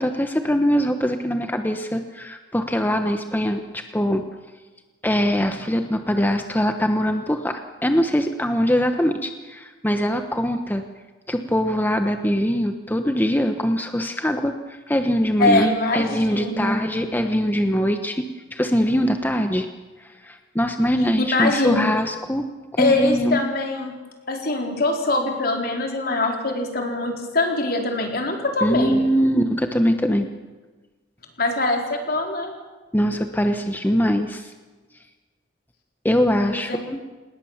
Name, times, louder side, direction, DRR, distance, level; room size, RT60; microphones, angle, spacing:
voice 1, 0.0-4.2 5.0-10.8 11.3-15.7 15.9-18.2 18.5-19.7 20.0-22.5 22.7-23.4 28.6-30.3 32.9-34.5 36.0-37.0, equal, 10° left, 6 dB, 1.1 m, -22 dB
voice 2, 15.4-17.1 21.3-21.8 22.8-23.9 24.3-29.0 31.4-32.5 36.4-36.8, left 2 dB, 55° left, 2 dB, 4.3 m, -23 dB
28.0 x 20.0 x 7.4 m, 1.3 s
head